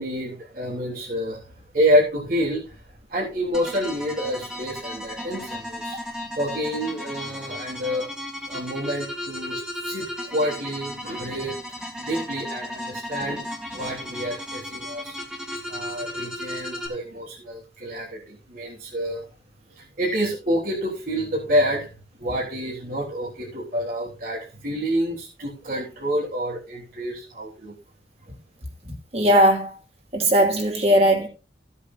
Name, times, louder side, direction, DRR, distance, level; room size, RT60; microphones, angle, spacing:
voice 1, 0.0-6.0 6.4-8.1 8.5-11.6 12.0-15.2 15.7-19.2 19.7-21.9 22.2-27.7, equal, 50° right, 3.5 m, -28 dB
sound 1, 3.5-16.9, left 1 dB, 5° right, 2.2 m, -35 dB
voice 2, 29.1-29.7 30.1-31.3, equal, 35° right, 2.7 m, -18 dB
16.0 x 8.2 x 2.7 m
head